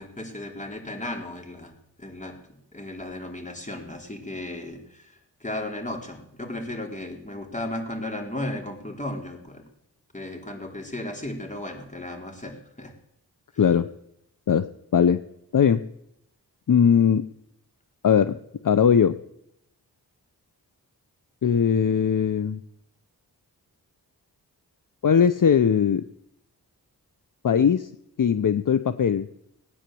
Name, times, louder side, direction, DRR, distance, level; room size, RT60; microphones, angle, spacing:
voice 1, 0.0-2.3 2.7-9.6 10.1-12.9, left 1 dB, 20° left, 2 dB, 4.1 m, -35 dB
voice 2, 13.6-13.9 14.5-15.2 15.5-15.8 16.7-17.2 18.0-18.4 18.6-19.2 21.4-22.6 25.0-26.0 27.4-27.9 28.2-29.3, left 7 dB, 55° left, 13 dB, 0.7 m, -20 dB
18.5 x 9.8 x 7.7 m, 0.79 s
cardioid pair, 50°, 39 cm